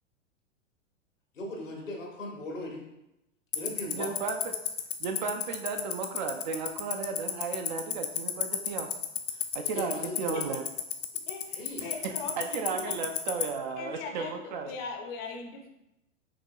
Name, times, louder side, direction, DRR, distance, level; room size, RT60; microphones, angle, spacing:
voice 1, 1.3-2.8 3.5-4.1 9.7-10.4 11.5-11.8, left 1 dB, 80° left, 0 dB, 1.2 m, -38 dB
Tick-tock, 3.5-13.4, left 13 dB, 65° left, 0.7 m, -28 dB
voice 2, 3.9-4.4 5.0-8.9 9.5-10.6 11.8-14.7, right 5 dB, 40° right, 5 dB, 0.4 m, -34 dB
voice 3, 11.3-12.9 13.8-15.7, left 4 dB, 25° left, 2 dB, 0.6 m, -40 dB
5.9 x 2.8 x 2.3 m, 0.88 s
figure-of-eight pair, 105°, 38 cm